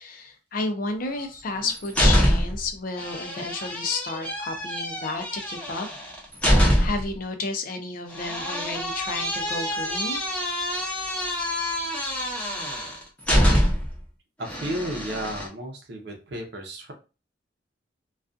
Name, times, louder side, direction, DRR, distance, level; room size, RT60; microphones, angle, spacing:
voice 1, 0.0-5.9 6.8-10.2, left 3 dB, 50° left, 5 dB, 0.5 m, -31 dB
sound 1, 1.3-2.7 3.0-7.1 8.1-14.0 14.4-15.5, equal, 10° left, 0.7 m, -25 dB
voice 2, 14.4-16.9, right 1 dB, 65° right, 2 dB, 0.6 m, -33 dB
2.3 x 2.3 x 2.5 m, 0.31 s
head